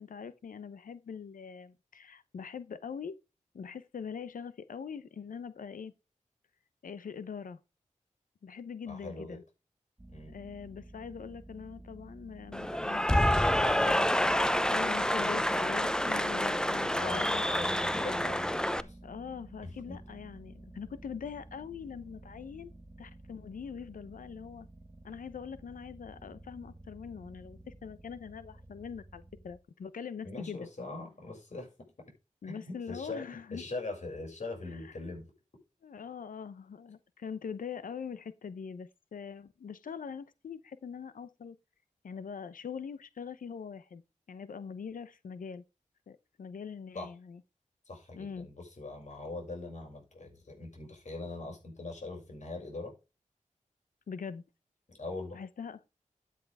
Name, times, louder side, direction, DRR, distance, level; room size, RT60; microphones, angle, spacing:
voice 1, 0.0-3.1 3.5-5.9 6.8-7.6 8.4-9.4 10.3-14.1 14.7-17.5 19.0-22.7 23.0-24.7 25.0-30.7 32.4-33.7 34.7-35.0 35.8-41.6 42.0-44.0 44.3-45.6 46.1-47.4 48.1-48.5 54.1-54.4 55.3-55.8, left 6 dB, 90° left, 0.8 m, -43 dB
voice 2, 8.9-9.4 10.1-10.4 16.9-19.0 19.9-20.0 30.2-31.7 32.4-33.2 33.5-35.3 46.9-47.1 47.9-52.9 54.9-55.4, left 2 dB, 60° left, 6.7 m, -41 dB
sound 1, 10.0-29.6, right 1 dB, 20° right, 1.1 m, -52 dB
Cheering / Applause, 12.5-18.8, equal, 5° left, 0.7 m, -28 dB
12.5 x 8.5 x 3.6 m
wide cardioid pair, 65°, 14 cm